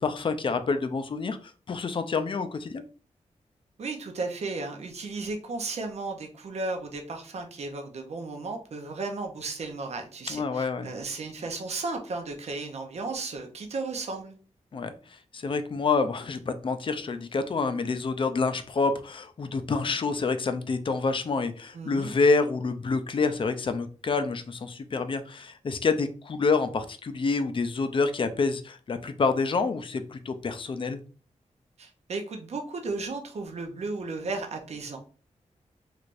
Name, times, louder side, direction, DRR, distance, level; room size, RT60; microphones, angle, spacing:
voice 1, 0.0-1.4 1.7-2.8 10.3-10.9 14.7-31.0, left 4 dB, 45° left, 9 dB, 0.5 m, -27 dB
voice 2, 3.8-14.4 21.7-22.1 31.8-35.0, right 3 dB, 60° right, 3 dB, 0.7 m, -34 dB
3.3 x 3.2 x 2.5 m, 0.38 s
wide cardioid pair, 95°, 13 cm